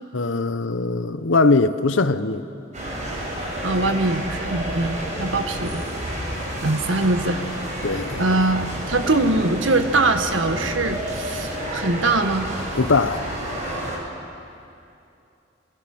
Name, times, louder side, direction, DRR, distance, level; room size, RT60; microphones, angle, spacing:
voice 1, 0.1-2.5 7.8-8.3 12.8-13.3, left 3 dB, 85° left, 11 dB, 1.0 m, -21 dB
sound 1, 2.7-14.0, right 1 dB, 40° right, 5.7 m, -30 dB
voice 2, 3.6-5.8 6.6-7.4 8.2-12.5, right 2 dB, 85° right, 7 dB, 1.6 m, -22 dB
27.0 x 25.0 x 6.2 m, 2.7 s
head